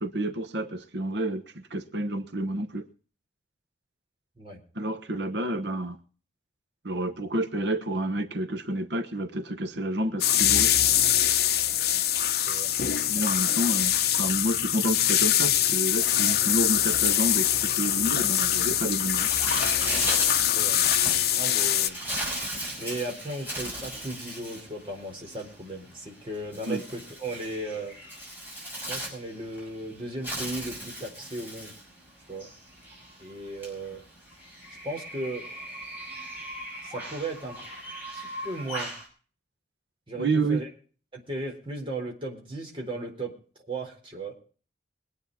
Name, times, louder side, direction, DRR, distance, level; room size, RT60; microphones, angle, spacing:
voice 1, 0.0-2.9 4.7-6.0 6.8-10.7 13.1-19.3 26.7-26.8 40.2-40.6, right 1 dB, 75° right, 1.2 m, -29 dB
sound 1, 10.2-21.9, left 11 dB, 60° left, 0.8 m, -24 dB
Bird, 19.2-39.1, right 1 dB, 10° right, 6.1 m, -37 dB
voice 2, 20.5-20.9 21.3-22.0 22.8-28.0 28.9-31.7 32.3-32.5 33.2-34.0 34.8-35.5 36.8-37.6 38.1-38.9 40.1-40.7 41.1-44.4, right 2 dB, 30° right, 4.3 m, -36 dB
22.5 x 9.0 x 4.1 m
head